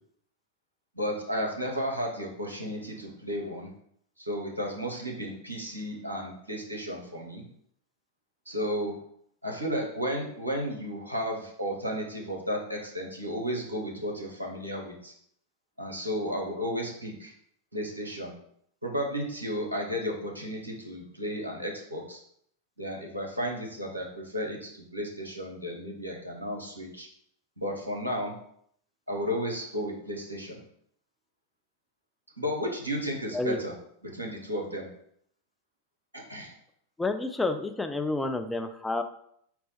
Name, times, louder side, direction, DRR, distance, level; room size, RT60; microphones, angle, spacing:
voice 1, 0.9-3.7 4.2-7.4 8.5-9.0 9.4-15.1 15.8-17.3 17.7-18.3 18.8-22.2 22.8-27.1 27.6-28.3 29.1-30.6 32.4-33.7 34.0-34.9 36.1-36.5, equal, 85° right, 0 dB, 0.8 m, -33 dB
voice 2, 37.0-39.0, left 2 dB, 10° left, 7 dB, 0.3 m, -29 dB
4.3 x 2.2 x 4.0 m, 0.68 s
figure-of-eight pair, 90°, 0 cm